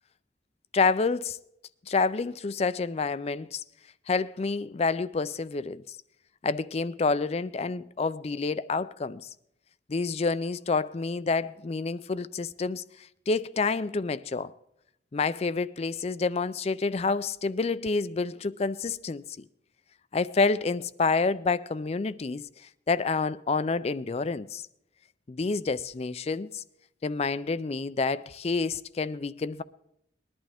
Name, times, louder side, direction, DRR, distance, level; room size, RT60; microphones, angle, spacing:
voice 1, 0.7-1.4 1.9-3.6 4.1-6.0 6.4-9.3 9.9-12.8 13.3-14.5 15.1-19.5 20.1-22.5 22.9-24.7 25.3-26.6 27.0-29.6, left 4 dB, 35° left, 0.4 m, -28 dB
20.5 x 11.5 x 3.5 m
head